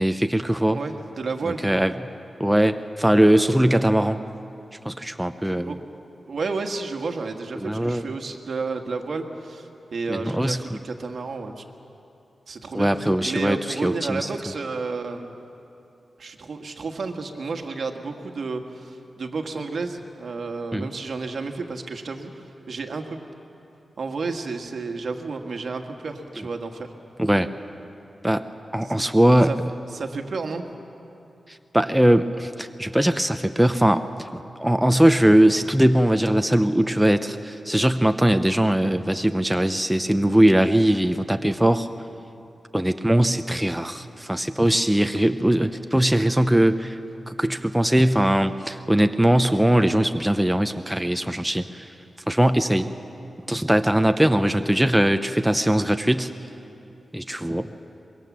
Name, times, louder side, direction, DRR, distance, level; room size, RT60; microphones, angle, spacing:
voice 1, 0.0-0.8 1.4-1.9 2.4-4.2 4.8-5.8 7.6-8.1 10.1-10.6 12.7-14.3 20.7-20.9 27.2-27.5 28.2-28.5 28.7-29.5 31.5-41.9 42.7-47.0 47.3-51.9 52.3-52.9 53.5-56.3 57.1-57.7, right 1 dB, 5° right, 8 dB, 0.7 m, -20 dB
voice 2, 0.7-1.6 5.6-5.8 6.3-11.6 12.5-15.4 16.2-23.2 24.0-26.9 28.8-28.9 29.4-29.6 29.9-30.7 54.2-54.3, right 4 dB, 65° right, 4 dB, 1.7 m, -31 dB
24.5 x 22.0 x 7.4 m, 2.8 s
wide cardioid pair, 95°, 0 cm